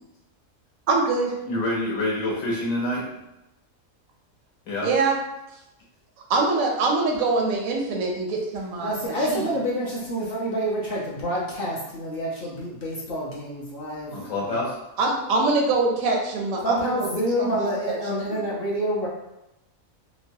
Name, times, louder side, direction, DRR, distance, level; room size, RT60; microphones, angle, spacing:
voice 1, 0.9-1.4 4.8-5.2 6.3-9.5 15.0-16.9 17.4-18.4, right 3 dB, 85° right, 1 dB, 1.0 m, -24 dB
voice 2, 1.4-3.0 4.7-4.9 14.1-14.7, left 1 dB, 70° left, -4 dB, 1.2 m, -26 dB
voice 3, 8.8-14.6 16.6-19.1, equal, 55° left, -5 dB, 0.7 m, -28 dB
3.0 x 2.1 x 2.7 m, 0.88 s
omnidirectional pair, 1.4 m